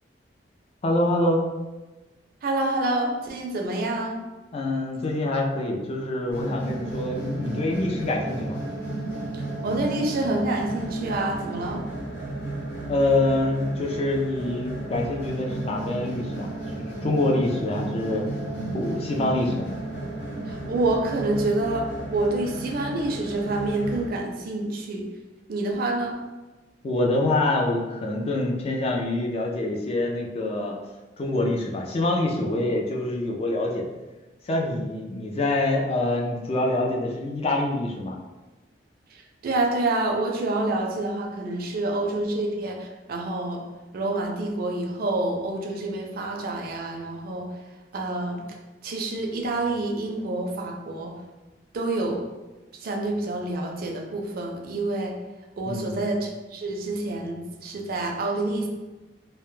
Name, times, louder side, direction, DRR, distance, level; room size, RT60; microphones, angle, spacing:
voice 1, 0.8-1.5 4.5-8.6 12.9-16.5 17.0-18.3 18.7-19.7 26.8-30.7 31.2-33.9 34.5-38.2 55.7-56.0, left 2 dB, 35° left, 0 dB, 0.3 m, -25 dB
voice 2, 2.4-4.3 9.3-11.8 20.5-25.1 25.5-26.2 39.4-43.6 43.9-47.5 47.9-48.4 48.8-51.1 51.7-52.2 52.8-55.1 55.6-58.7, right 2 dB, 55° right, 1 dB, 0.4 m, -27 dB
sound 1, 6.3-24.1, right 2 dB, 85° left, 1.1 m, -33 dB
2.1 x 2.0 x 3.0 m, 1.2 s
head